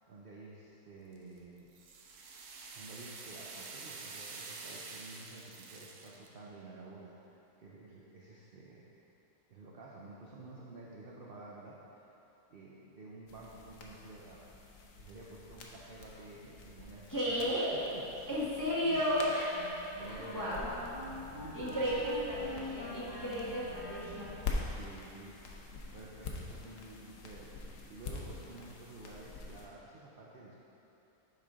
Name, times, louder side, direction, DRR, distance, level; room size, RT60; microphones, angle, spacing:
voice 1, 0.0-1.7 2.7-7.1 7.6-9.0 9.5-12.0 12.5-14.4 14.9-17.4 17.7-19.0 20.0-20.6 21.4-22.7 24.7-25.7 25.9-30.6, right 2 dB, 55° right, -4 dB, 0.6 m, -51 dB
sound 1, 1.1-6.3, right 4 dB, 85° right, 1.2 m, -47 dB
sound 2, 13.3-29.7, left 3 dB, 65° left, 1.0 m, -45 dB
voice 2, 17.1-17.7 18.3-19.5 20.0-20.7 21.5-24.3, equal, 15° left, -8 dB, 0.9 m, -33 dB
Wind instrument woodwind instrument, 19.2-24.6, equal, 30° left, 1.2 m, -46 dB
7.7 x 5.1 x 3.6 m, 3.0 s
omnidirectional pair, 1.6 m